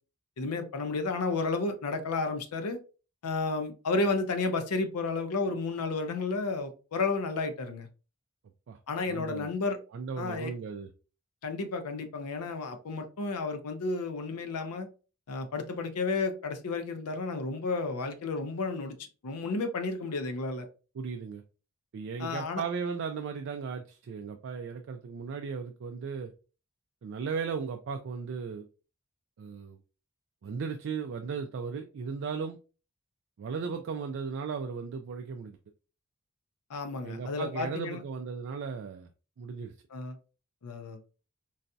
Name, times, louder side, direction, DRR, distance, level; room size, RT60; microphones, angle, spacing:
voice 1, 0.4-2.8 3.2-7.9 8.9-9.8 10.2-10.5 11.4-14.9 15.3-20.7 22.2-22.6 36.7-38.0 39.9-40.2 40.6-41.0, left 3 dB, 85° left, 0.5 m, -32 dB
voice 2, 9.1-9.5 9.9-10.9 21.0-21.4 21.9-26.3 27.0-28.7 29.4-29.8 30.4-32.6 33.4-35.6 37.0-39.1 39.4-39.7, right 5 dB, 55° right, 0.3 m, -36 dB
3.9 x 2.6 x 2.2 m
head